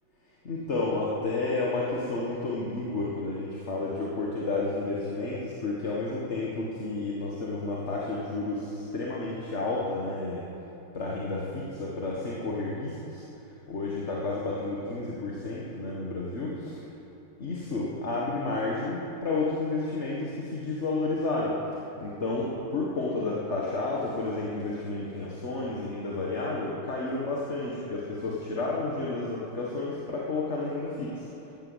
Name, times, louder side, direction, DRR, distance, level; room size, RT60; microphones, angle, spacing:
voice 1, 0.4-10.4 10.9-13.2 13.7-16.8 17.4-21.5 22.0-31.1, left 3 dB, 35° left, -4 dB, 1.7 m, -31 dB
13.5 x 13.0 x 7.9 m, 2.9 s
omnidirectional pair, 2.4 m